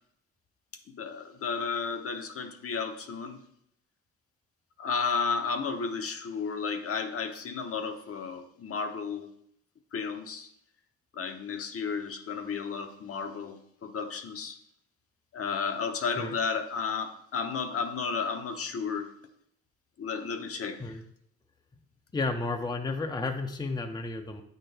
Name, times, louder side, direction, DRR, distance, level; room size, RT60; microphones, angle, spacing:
voice 1, 0.9-3.4 4.8-9.3 9.9-10.5 11.1-14.6 15.3-19.1 20.0-20.8, left 5 dB, 50° left, 6 dB, 0.8 m, -33 dB
voice 2, 22.1-24.4, left 3 dB, 15° left, 4 dB, 0.6 m, -32 dB
8.7 x 4.5 x 3.3 m, 0.71 s
cardioid pair, 90°, 30 cm